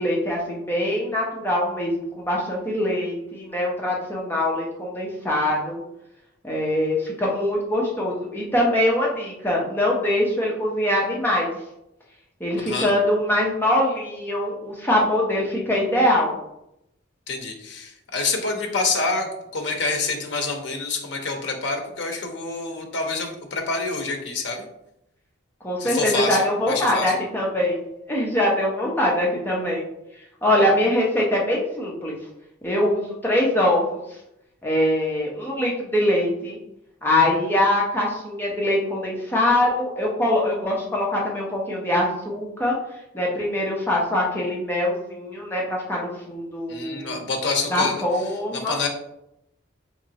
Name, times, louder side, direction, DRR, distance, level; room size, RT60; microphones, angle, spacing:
voice 1, 0.0-5.8 6.4-11.5 12.4-16.3 25.6-27.8 28.1-29.8 30.4-32.1 32.6-34.0 34.6-36.6 37.0-42.8 43.1-47.2 47.7-48.8, left 1 dB, 10° left, -3 dB, 0.7 m, -23 dB
voice 2, 17.3-24.6 25.8-27.1 46.7-48.2 48.5-48.9, left 3 dB, 60° left, 2 dB, 0.6 m, -27 dB
3.6 x 3.0 x 2.8 m, 0.82 s
head